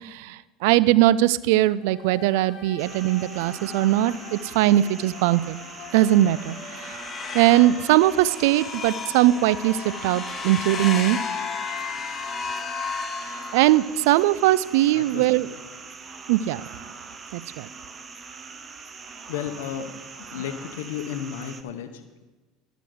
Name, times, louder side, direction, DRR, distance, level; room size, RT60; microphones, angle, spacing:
voice 1, 0.0-5.6 5.9-7.0 7.3-11.2 13.5-15.5 16.3-16.6 17.3-17.7, right 14 dB, 75° right, 18 dB, 0.3 m, -20 dB
sound 1, 1.8-11.8, left 8 dB, 65° left, 1.2 m, -44 dB
sound 2, 2.8-21.6, right 5 dB, 30° right, 0.9 m, -42 dB
sound 3, 5.9-14.2, left 5 dB, 35° left, 1.3 m, -34 dB
voice 2, 14.9-15.6 19.3-22.2, left 9 dB, 80° left, 8 dB, 0.7 m, -34 dB
12.0 x 5.0 x 7.8 m, 1.2 s
hypercardioid pair, 85°, 0 cm